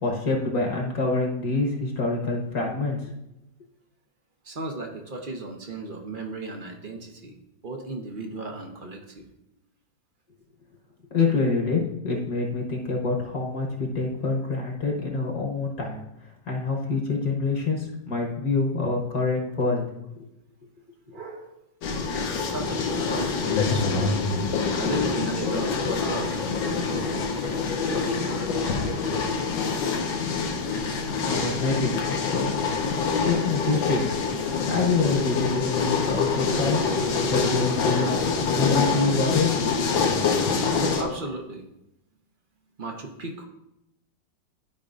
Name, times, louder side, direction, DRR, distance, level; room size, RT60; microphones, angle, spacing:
voice 1, 0.0-3.1 11.1-16.0 16.5-19.9 20.2-20.3 31.3-32.5 33.1-34.0 34.6-36.8 37.3-39.5, left 3 dB, 55° left, 0 dB, 1.7 m, -26 dB
voice 2, 4.4-9.2 21.1-21.6 22.5-23.9 24.8-29.3 37.9-38.2 40.8-41.7 42.8-43.4, right 2 dB, 45° right, 2 dB, 0.6 m, -35 dB
sound 1, 21.8-41.0, left 5 dB, 85° left, 1.7 m, -26 dB
13.0 x 5.0 x 2.5 m, 0.87 s
omnidirectional pair, 2.1 m